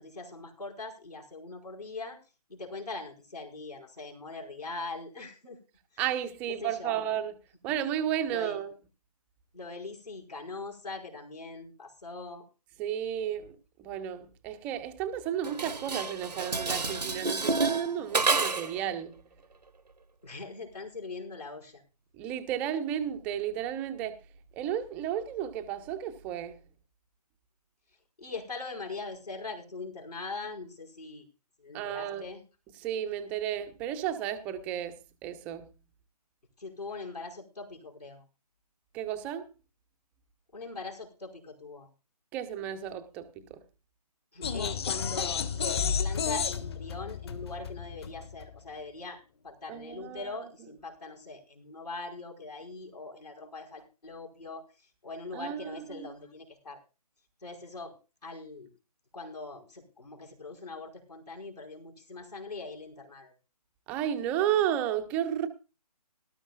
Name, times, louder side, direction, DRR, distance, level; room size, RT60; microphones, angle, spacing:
voice 1, 0.0-2.2 2.5-5.6 5.9-6.0 6.5-7.0 8.3-8.6 9.5-12.4 20.2-21.8 28.2-31.2 31.6-32.4 36.6-38.2 40.5-41.9 44.3-56.8 57.4-57.9 58.2-58.7 59.1-63.3, left 3 dB, 75° left, 5.0 m, -41 dB
voice 2, 6.0-7.3 7.6-8.7 12.8-19.2 22.2-24.2 24.5-26.6 31.7-32.3 32.8-35.7 38.9-39.4 42.3-43.6 49.7-50.3 55.3-56.1 63.9-65.5, right 10 dB, 5° right, 0.5 m, -33 dB
Dishes pots and pans, 15.4-18.8, right 3 dB, 80° right, 0.9 m, -29 dB
sound 1, 44.4-48.6, left 6 dB, 40° left, 1.3 m, -32 dB
18.5 x 12.5 x 2.3 m
figure-of-eight pair, 145°, 21 cm